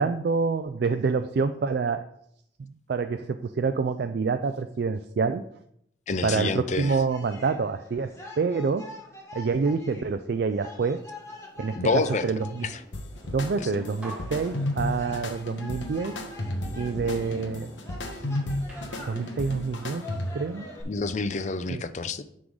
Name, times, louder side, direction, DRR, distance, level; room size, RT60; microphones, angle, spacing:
voice 1, 0.0-2.0 2.6-5.4 6.2-8.9 9.3-11.0 11.6-11.8 12.2-12.6 13.2-16.1 16.8-17.7 19.1-20.0 20.3-20.7 21.7-21.8, right 4 dB, 55° right, 9 dB, 0.3 m, -27 dB
voice 2, 6.1-7.0 11.8-12.8 13.6-13.7 20.9-22.2, left 3 dB, 40° left, 12 dB, 0.4 m, -28 dB
sound 1, 6.8-20.8, left 2 dB, 15° left, 1.4 m, -46 dB
sound 2, 12.9-20.5, left 1 dB, 80° left, 1.1 m, -33 dB
sound 3, 14.0-15.3 15.9-18.3 18.7-20.5, equal, 5° right, 1.5 m, -45 dB
9.8 x 3.7 x 4.8 m, 0.73 s
head